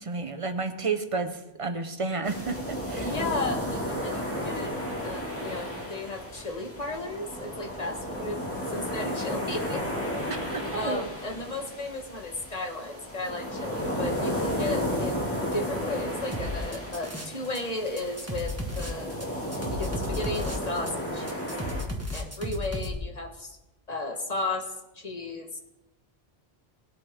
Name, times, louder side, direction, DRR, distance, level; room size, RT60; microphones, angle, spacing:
voice 1, 0.0-3.1 10.3-11.0, right 4 dB, 35° right, 8 dB, 1.0 m, -31 dB
sound 1, 2.2-21.8, equal, 10° left, 2.3 m, -33 dB
voice 2, 3.0-4.8 5.0-8.4 8.7-9.9 10.7-15.2 15.5-19.3 19.7-21.5 22.1-23.6 23.9-25.6, left 2 dB, 40° left, 4 dB, 1.5 m, -34 dB
sound 2, 16.3-17.6 17.9-22.9, left 1 dB, 15° right, 1.6 m, -34 dB
19.5 x 8.5 x 3.7 m, 0.92 s
omnidirectional pair, 1.1 m